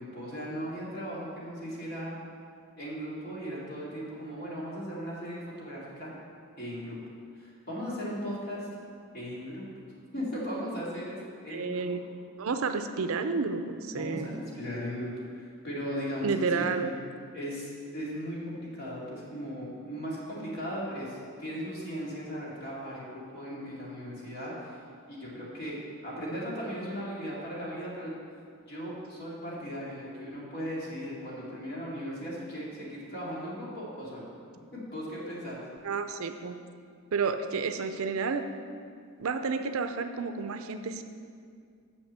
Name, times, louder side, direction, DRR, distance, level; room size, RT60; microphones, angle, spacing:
voice 1, 0.0-2.2 2.8-6.1 6.6-7.0 7.4-8.7 9.1-9.6 10.1-12.0 13.9-17.0 17.3-24.8 25.1-25.8 26.0-28.1 28.7-34.3 34.7-35.6, equal, 45° left, -6 dB, 2.3 m, -37 dB
voice 2, 11.5-12.0 12.4-14.3 16.2-16.9 35.8-36.6 37.1-38.4 39.2-41.0, right 4 dB, 70° right, 8 dB, 0.5 m, -30 dB
6.4 x 6.3 x 7.4 m, 2.2 s
head